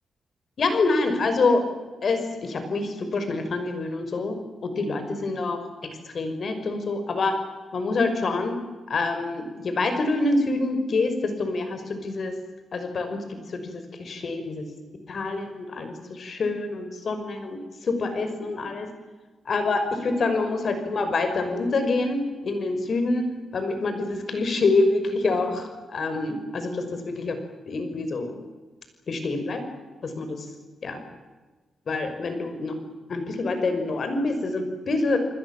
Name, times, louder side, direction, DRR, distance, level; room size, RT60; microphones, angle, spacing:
voice 1, 0.6-1.6 2.0-4.4 4.6-5.6 6.0-7.4 7.7-8.6 8.9-12.3 12.7-13.2 13.5-14.7 15.1-18.9 19.4-27.4 27.7-28.4 29.1-29.6 30.0-30.5 30.8-31.0 31.9-32.7 33.1-35.2, left 3 dB, 55° left, 8 dB, 5.9 m, -26 dB
29.5 x 21.0 x 7.5 m, 1.3 s
cardioid pair, 95°, 0 cm